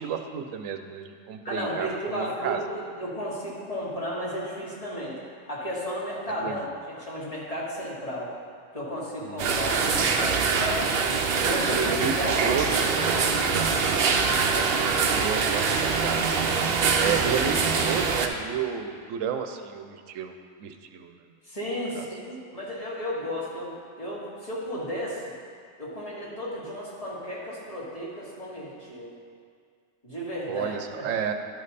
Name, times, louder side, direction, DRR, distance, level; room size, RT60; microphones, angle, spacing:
voice 1, 0.0-2.6 6.3-6.7 9.2-9.6 11.8-12.9 15.1-16.2 17.0-21.2 22.0-22.1 30.5-31.3, right 7 dB, 85° right, 6 dB, 1.0 m, -31 dB
voice 2, 1.4-5.2 5.5-8.3 8.7-10.8 11.5-13.6 21.4-25.2 25.8-29.1 30.0-30.8, equal, 30° left, -6 dB, 1.7 m, -33 dB
sound 1, 9.4-18.3, right 5 dB, 60° right, 0.7 m, -24 dB
12.0 x 5.2 x 4.1 m, 2.1 s
omnidirectional pair, 1.3 m